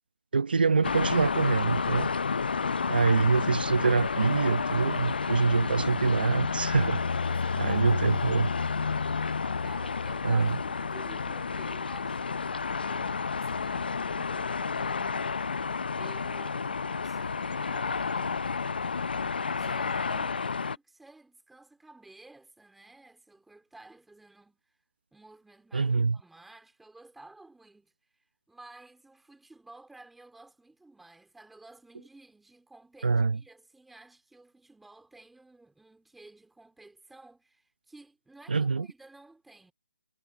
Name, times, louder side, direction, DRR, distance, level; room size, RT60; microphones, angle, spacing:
voice 1, 0.3-2.1 2.9-7.0 7.6-8.5 10.2-10.5 25.7-26.2 33.0-33.4 38.5-38.9, right 4 dB, 75° right, 1.0 m, -25 dB
sound 1, 0.8-20.8, left 5 dB, 75° left, 0.6 m, -30 dB
voice 2, 2.6-3.1 7.1-15.2 15.9-18.5 19.4-24.7 25.1-39.7, right 2 dB, ahead, 3.3 m, -54 dB
hypercardioid pair, 170°, 5 cm